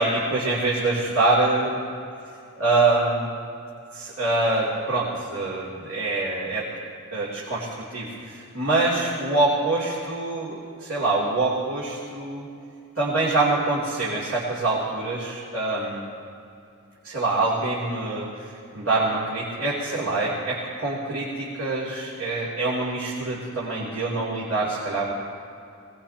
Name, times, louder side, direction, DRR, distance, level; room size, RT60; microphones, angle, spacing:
voice 1, 0.0-1.8 2.6-3.3 3.9-6.7 7.1-7.7 7.9-12.5 13.0-16.0 17.0-18.3 18.7-25.1, right 2 dB, 70° right, -7 dB, 3.0 m, -25 dB
24.5 x 19.5 x 2.9 m, 2.5 s
head